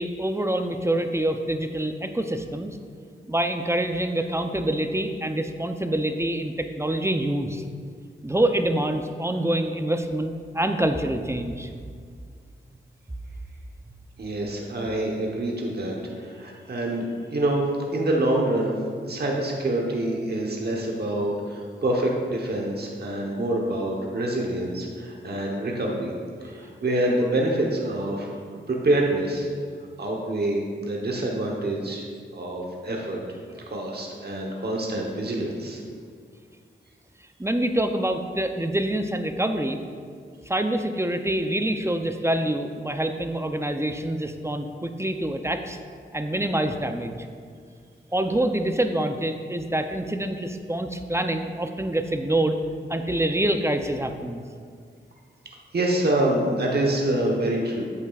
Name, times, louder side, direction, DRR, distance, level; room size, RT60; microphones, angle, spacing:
voice 1, 0.0-2.8 3.3-7.6 8.2-11.7 37.4-39.8 40.5-45.8 46.1-47.2 48.1-52.6 52.9-54.4, right 1 dB, 15° right, 6 dB, 0.5 m, -26 dB
voice 2, 14.2-17.6 17.9-18.7 19.0-26.1 26.5-28.4 28.7-29.5 30.0-32.0 32.3-33.2 33.7-35.8 55.7-57.8, right 1 dB, 50° right, -1 dB, 1.0 m, -26 dB
8.2 x 8.1 x 2.4 m, 2.1 s
cardioid pair, 60°, 21 cm